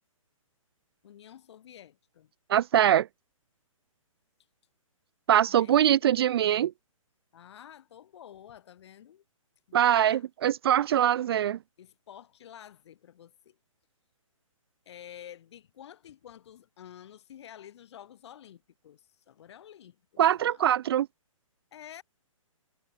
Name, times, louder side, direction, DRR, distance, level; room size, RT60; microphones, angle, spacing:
voice 1, 1.0-2.3 5.4-6.5 7.3-9.2 9.7-10.2 11.8-13.6 14.9-20.7 21.7-22.0, left 10 dB, 50° left, 5.3 m, -50 dB
voice 2, 2.5-3.1 5.3-6.7 9.7-11.6 20.2-21.1, right 11 dB, 45° right, 0.4 m, -23 dB
hypercardioid pair, 135°, 18 cm